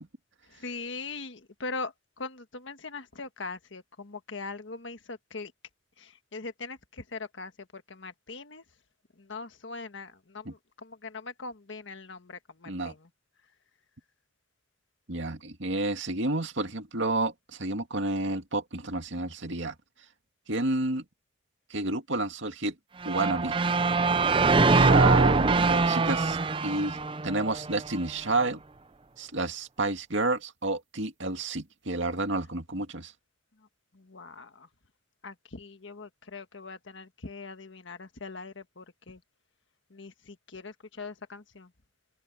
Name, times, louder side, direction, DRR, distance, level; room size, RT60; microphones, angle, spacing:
voice 1, 0.5-5.5 6.0-8.6 9.2-13.1 33.9-34.7 35.2-39.2 39.9-41.7, left 3 dB, 70° left, 1.5 m, -41 dB
voice 2, 15.1-19.7 20.5-21.0 21.7-22.7 23.1-23.5 24.7-26.4 26.6-27.0 27.2-28.6 29.2-33.1, right 2 dB, 70° right, 2.2 m, -30 dB
sound 1, 23.0-28.1, right 3 dB, 25° right, 0.5 m, -23 dB
open air
head